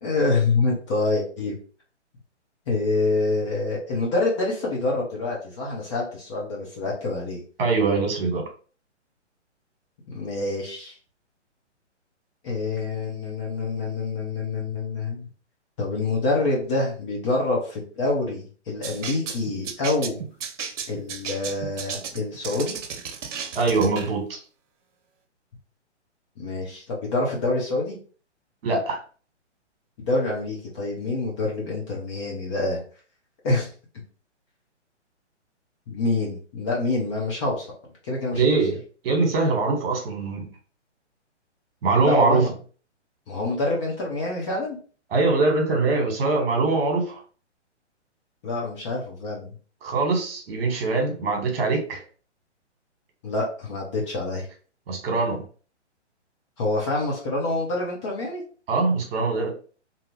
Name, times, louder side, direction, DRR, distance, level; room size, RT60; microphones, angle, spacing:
voice 1, 0.0-1.5 2.7-7.4 10.1-10.9 12.4-15.3 15.8-20.2 20.9-22.8 26.4-28.0 30.1-32.8 33.4-33.7 35.9-37.7 38.0-38.4 42.0-42.5 43.3-44.8 48.4-49.5 53.2-54.5 56.6-58.4, left 2 dB, 25° left, -2 dB, 0.7 m, -26 dB
voice 2, 7.6-8.4 23.5-24.4 28.6-29.0 38.3-38.8 39.0-40.5 41.8-42.5 45.1-47.2 49.8-52.0 54.9-55.4 58.7-59.5, right 3 dB, 50° right, 2 dB, 1.3 m, -22 dB
sound 1, 18.8-24.1, right 6 dB, 85° right, 0.7 m, -34 dB
2.7 x 2.4 x 3.0 m, 0.40 s
hypercardioid pair, 145°, 36 cm